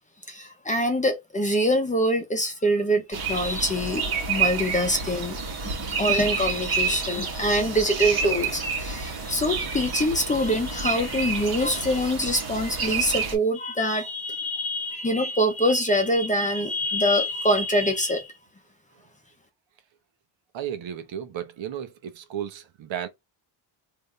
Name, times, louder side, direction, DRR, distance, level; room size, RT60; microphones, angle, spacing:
voice 1, 0.3-5.4 5.9-18.3, equal, 15° left, 0.8 m, -24 dB
sound 1, 3.1-13.4, right 5 dB, 45° right, 1.8 m, -29 dB
voice 2, 20.5-23.1, right 10 dB, 60° right, 1.0 m, -34 dB
3.5 x 2.8 x 3.3 m
cardioid pair, 135°, 50 cm